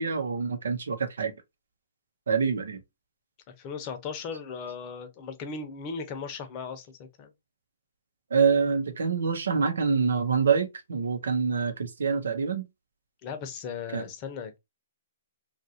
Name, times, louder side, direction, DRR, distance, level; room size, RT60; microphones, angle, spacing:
voice 1, 0.0-1.3 2.3-2.8 8.3-12.6 13.9-14.0, right 5 dB, 80° right, 0.8 m, -26 dB
voice 2, 3.6-7.3 13.2-14.6, left 5 dB, 35° left, 0.8 m, -37 dB
2.9 x 2.5 x 2.7 m
hypercardioid pair, 135°, 0 cm